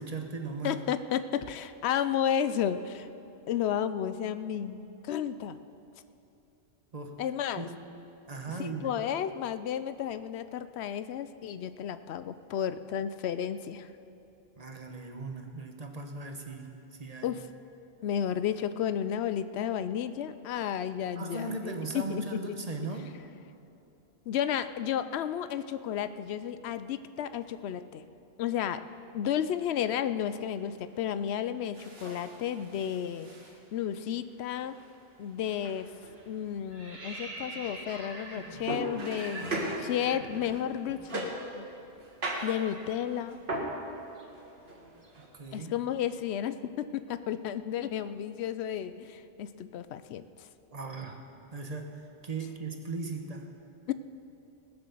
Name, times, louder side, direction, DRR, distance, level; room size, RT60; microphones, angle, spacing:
voice 1, 0.0-0.8 6.9-7.2 7.6-7.8 8.3-9.0 14.6-16.7 17.0-17.3 21.2-23.1 45.3-45.7 50.7-51.2 51.5-51.9 52.2-53.5, right 3 dB, 40° right, 4 dB, 1.1 m, -37 dB
voice 2, 0.6-3.1 3.5-5.6 7.2-7.7 8.6-13.9 17.2-17.5 18.0-22.4 24.3-28.0 28.4-28.8 29.1-33.3 33.7-34.8 35.2-35.9 36.3-41.7 42.4-43.4 45.5-50.2 53.9-54.0, left 9 dB, 85° left, 13 dB, 0.8 m, -32 dB
sound 1, 30.2-30.7 31.7-34.0 34.4-34.9 35.4-36.6 38.4-41.5 42.0-43.8 44.3-45.3, right 2 dB, 55° right, 2.0 m, -39 dB
sound 2, 35.5-35.8 36.1-41.0 41.3-41.5 41.8-45.8, right 2 dB, 75° right, 1.9 m, -46 dB
19.5 x 7.0 x 6.8 m, 2.8 s
omnidirectional pair, 1.1 m